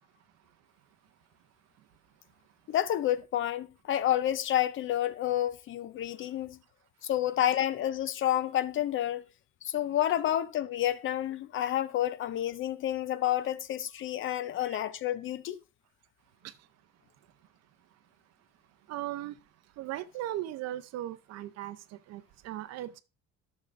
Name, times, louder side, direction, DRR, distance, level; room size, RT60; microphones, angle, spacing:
voice 1, 2.7-6.6 7.0-9.2 9.6-15.6, left 12 dB, 45° left, 0.5 m, -29 dB
voice 2, 18.9-19.4 19.8-21.8 22.1-23.0, right 13 dB, 60° right, 0.6 m, -37 dB
11.5 x 6.5 x 2.5 m
cardioid pair, 155°, 29 cm